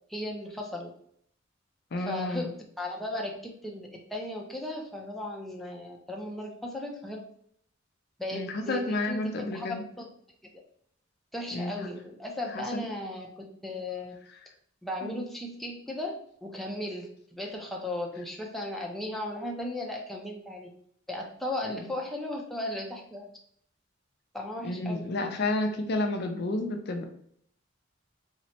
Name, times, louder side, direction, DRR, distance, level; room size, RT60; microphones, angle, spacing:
voice 1, 0.1-0.9 2.0-7.2 8.2-10.1 11.3-14.1 14.8-20.7 21.1-23.3 24.3-25.1, left 1 dB, ahead, -1 dB, 0.5 m, -36 dB
voice 2, 1.9-2.5 8.3-9.8 11.5-11.9 12.5-12.8 15.0-15.2 21.7-21.8 24.6-27.0, left 2 dB, 55° left, 5 dB, 0.5 m, -31 dB
3.0 x 2.0 x 4.1 m, 0.65 s
head